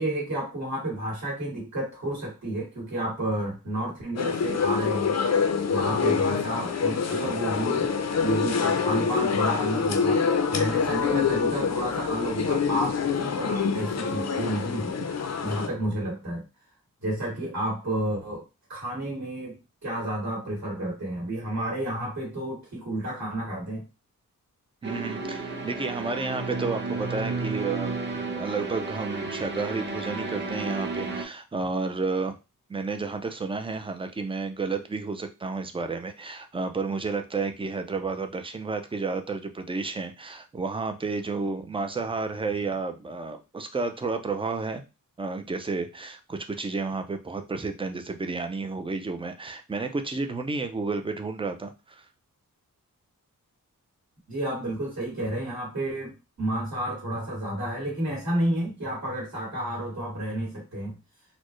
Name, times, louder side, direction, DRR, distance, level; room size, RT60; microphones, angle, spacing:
voice 1, 0.0-5.1 5.7-7.9 8.2-14.9 15.4-16.4 17.0-18.4 18.7-23.8 54.3-61.0, right 1 dB, 55° right, -5 dB, 1.8 m, -31 dB
sound 1, 4.2-15.7, left 6 dB, 50° left, 0.5 m, -26 dB
voice 2, 24.8-28.0 28.4-32.4 32.7-44.8 45.2-52.0, right 4 dB, 15° right, 7 dB, 0.3 m, -31 dB
Classical Ambience, 24.8-31.2, right 3 dB, 30° right, 0.8 m, -32 dB
4.2 x 2.1 x 3.0 m, 0.28 s
wide cardioid pair, 165°, 34 cm